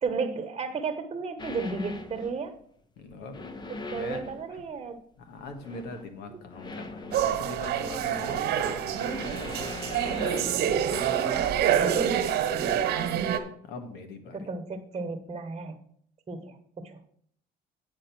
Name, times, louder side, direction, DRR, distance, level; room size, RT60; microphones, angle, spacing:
voice 1, 0.0-2.6 3.7-5.0 6.3-6.4 10.3-11.1 11.6-12.2 14.3-15.8 16.3-17.0, right 4 dB, 35° right, 5 dB, 1.1 m, -33 dB
sound 1, 1.4-2.5 3.1-4.6 5.2-6.1 6.5-10.5, left 3 dB, 25° left, 0.8 m, -40 dB
voice 2, 3.0-3.5 3.9-4.6 5.2-9.0 13.7-14.5, left 3 dB, 80° left, 6 dB, 1.6 m, -42 dB
sound 2, 7.1-13.4, right 9 dB, 75° right, 1.1 m, -27 dB
9.1 x 5.2 x 5.9 m, 0.63 s
cardioid pair, 110°, 17 cm